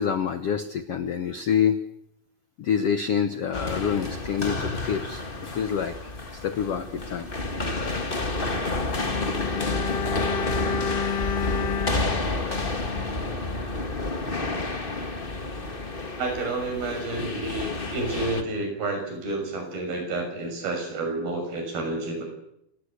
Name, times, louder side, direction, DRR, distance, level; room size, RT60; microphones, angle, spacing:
voice 1, 0.0-1.8 2.6-5.9 6.3-7.3, left 7 dB, 75° left, 10 dB, 1.3 m, -26 dB
sound 1, 3.5-18.4, left 2 dB, 30° left, 0.9 m, -30 dB
Bowed string instrument, 8.9-13.4 13.6-13.8, left 6 dB, 55° left, 1.9 m, -31 dB
voice 2, 16.2-22.3, right 2 dB, 70° right, 4 dB, 8.4 m, -30 dB
28.0 x 18.5 x 8.3 m, 0.76 s
omnidirectional pair, 4.5 m